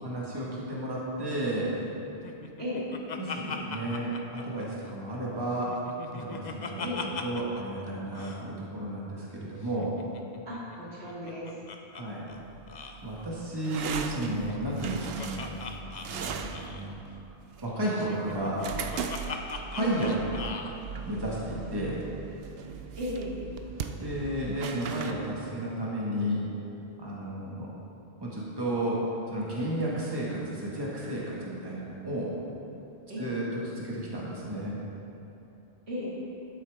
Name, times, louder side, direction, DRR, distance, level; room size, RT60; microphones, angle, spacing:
voice 1, 0.0-1.9 3.2-5.8 6.1-6.9 7.2-9.9 11.9-12.3 13.0-15.5 15.8-16.9 17.6-18.7 19.7-20.3 21.0-22.0 24.0-26.4 27.0-27.7 28.2-29.0 29.3-32.3 33.2-34.8, right 1 dB, 20° right, -6 dB, 1.7 m, -32 dB
Laughter, 2.2-5.2 5.5-7.6 7.9-8.0 8.1-8.4 9.6-12.0 12.3-12.4 12.7-13.0 14.1-16.9 17.9-20.7, left 5 dB, 50° left, 0.7 m, -40 dB
voice 2, 10.5-11.5 19.8-20.0 23.0-23.4 33.1-33.3 35.9-36.2, left 1 dB, 90° right, -8 dB, 2.5 m, -35 dB
sound 1, 12.3-25.1, right 6 dB, 70° right, 0.8 m, -39 dB
11.5 x 9.0 x 3.6 m, 2.8 s
omnidirectional pair, 1.1 m